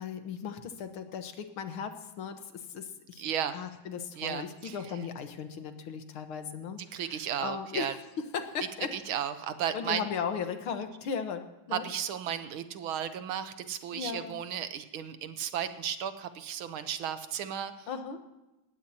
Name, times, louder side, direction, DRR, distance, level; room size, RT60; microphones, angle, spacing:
voice 1, 0.0-3.2 3.5-8.9 9.7-11.4 11.7-11.8 13.9-14.4 17.9-18.2, left 6 dB, 85° left, 7 dB, 2.1 m, -37 dB
voice 2, 3.2-3.6 4.2-4.8 6.9-7.9 8.9-10.0 11.7-17.9, right 9 dB, 80° right, 10 dB, 1.8 m, -34 dB
19.5 x 15.0 x 2.9 m, 1.0 s
omnidirectional pair, 2.3 m